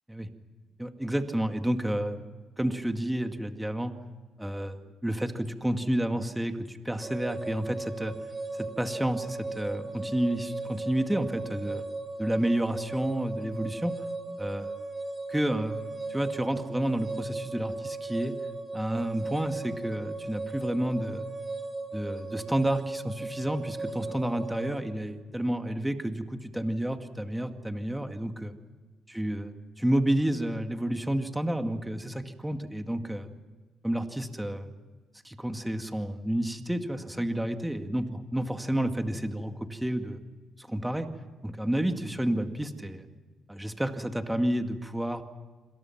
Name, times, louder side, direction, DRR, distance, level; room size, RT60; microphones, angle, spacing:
voice 1, 0.8-2.2 2.6-3.9 4.4-8.1 8.5-11.8 12.2-13.9 14.4-14.8 15.3-18.4 18.7-21.2 21.9-28.5 29.1-33.3 33.8-34.7 35.2-40.2 40.6-41.1 41.4-43.0 43.5-45.2, right 1 dB, 5° right, 6 dB, 2.1 m, -30 dB
sound 1, 7.0-24.8, right 3 dB, 25° right, 2.9 m, -37 dB
27.0 x 26.5 x 6.0 m, 1.4 s
cardioid pair, 90°, 0 cm